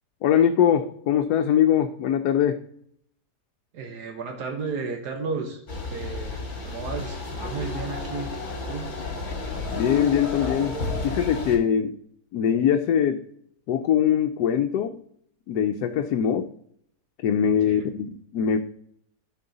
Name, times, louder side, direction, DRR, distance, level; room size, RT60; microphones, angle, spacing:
voice 1, 0.2-2.6 9.7-10.8 11.0-12.0 12.3-13.2 13.7-15.0 15.5-16.5 17.2-18.6, left 9 dB, 80° left, 5 dB, 1.2 m, -22 dB
voice 2, 3.7-8.3 8.7-8.9 17.7-17.9, right 4 dB, 80° right, 4 dB, 1.5 m, -33 dB
sound 1, 5.7-11.6, left 3 dB, 50° left, 1.7 m, -32 dB
11.5 x 4.6 x 3.9 m, 0.67 s
omnidirectional pair, 1.7 m